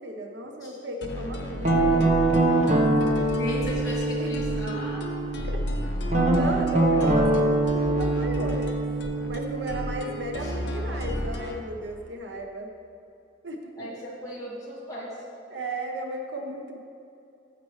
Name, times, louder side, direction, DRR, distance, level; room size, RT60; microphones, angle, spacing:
voice 1, 0.0-1.9 3.5-3.8 4.2-4.3 4.6-4.7 5.5-5.6 6.3-8.8 9.3-12.7 13.4-13.9 15.5-16.8, right 1 dB, 70° right, 3 dB, 0.9 m, -35 dB
sound 1, 1.0-11.7, left 1 dB, 70° left, 0.9 m, -33 dB
Guitar, 1.6-5.4 6.1-10.8, right 2 dB, 40° right, 1.0 m, -24 dB
voice 2, 3.3-5.1 10.4-10.6 13.8-15.2, equal, 20° left, -7 dB, 2.1 m, -37 dB
15.0 x 6.0 x 3.2 m, 2.7 s
head